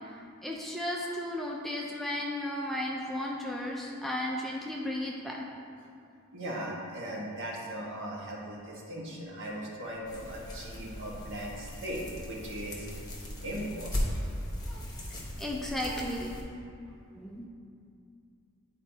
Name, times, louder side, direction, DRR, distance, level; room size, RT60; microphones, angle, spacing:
voice 1, 0.4-5.4 14.7-14.8 15.4-16.4 17.1-17.5, left 1 dB, ahead, -3 dB, 0.4 m, -34 dB
voice 2, 6.3-13.0 13.4-14.3, right 1 dB, 55° right, -4 dB, 1.3 m, -38 dB
sound 1, 10.0-16.4, left 1 dB, 15° left, 1.0 m, -38 dB
10.5 x 4.2 x 2.7 m, 2.4 s
head